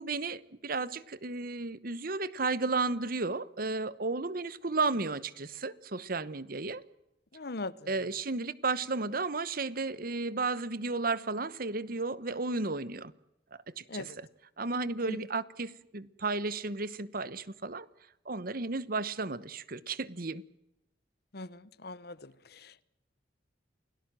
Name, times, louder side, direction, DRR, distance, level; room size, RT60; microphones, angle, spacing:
voice 1, 0.0-6.8 7.9-13.1 13.8-14.3 14.6-17.9 18.2-20.4, right 3 dB, 55° right, 1.1 m, -33 dB
voice 2, 7.3-7.9 13.9-14.2 15.1-15.2 21.3-22.8, left 2 dB, 60° left, 1.0 m, -41 dB
29.0 x 18.0 x 7.6 m
head